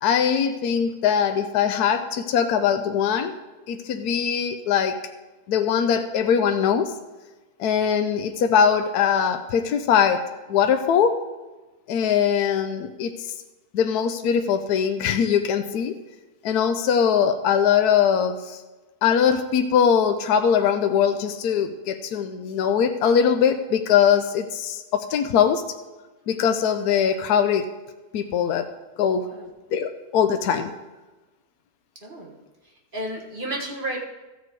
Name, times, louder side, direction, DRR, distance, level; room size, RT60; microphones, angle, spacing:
voice 1, 0.0-3.3 3.7-5.0 5.5-6.9 7.6-11.2 11.9-13.3 13.7-15.9 16.4-18.6 19.0-25.6 26.3-27.6 28.1-28.7 29.0-29.2 29.7-30.7, left 7 dB, 75° left, 7 dB, 1.2 m, -21 dB
voice 2, 29.2-29.5 32.0-32.3 32.9-34.0, right 1 dB, 35° right, 0 dB, 1.5 m, -32 dB
14.5 x 6.7 x 4.6 m, 1.2 s
omnidirectional pair, 1.7 m